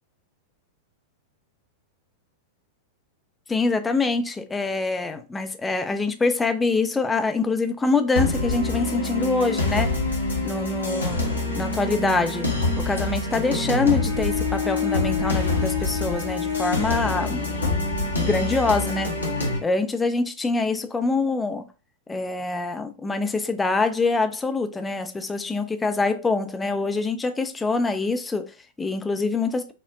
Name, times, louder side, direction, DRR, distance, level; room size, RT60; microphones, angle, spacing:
voice 1, 3.5-9.9 10.4-12.5 12.8-17.8 18.1-19.1 19.6-21.7 22.1-29.7, left 3 dB, 10° left, 0.4 m, -25 dB
sound 1, 8.2-19.6, left 3 dB, 80° left, 0.9 m, -25 dB
5.6 x 2.1 x 2.4 m
figure-of-eight pair, 95°, 0 cm